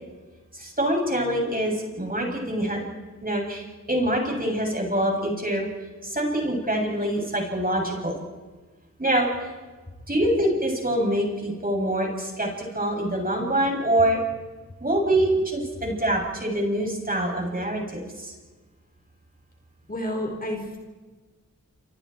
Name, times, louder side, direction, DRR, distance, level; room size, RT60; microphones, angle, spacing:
voice 1, 0.5-2.8 3.2-5.7 6.0-8.2 9.0-9.3 10.1-14.2 14.8-18.0, right 1 dB, 30° right, 0 dB, 7.6 m, -25 dB
voice 2, 19.9-20.8, left 1 dB, 30° left, 2 dB, 4.7 m, -30 dB
27.5 x 27.0 x 4.6 m, 1.3 s
cardioid pair, 60°, 31 cm